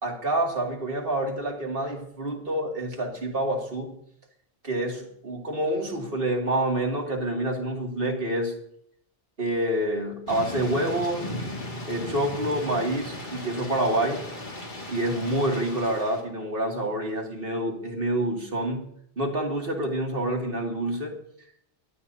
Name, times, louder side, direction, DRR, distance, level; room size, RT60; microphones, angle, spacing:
voice 1, 0.0-3.9 4.6-8.6 9.4-11.3 11.9-14.3 14.9-21.2, right 1 dB, 50° right, 0 dB, 2.6 m, -27 dB
Thunder / Rain, 10.3-16.2, left 1 dB, 45° left, 2.4 m, -36 dB
24.0 x 12.5 x 2.8 m, 0.68 s
omnidirectional pair, 1.2 m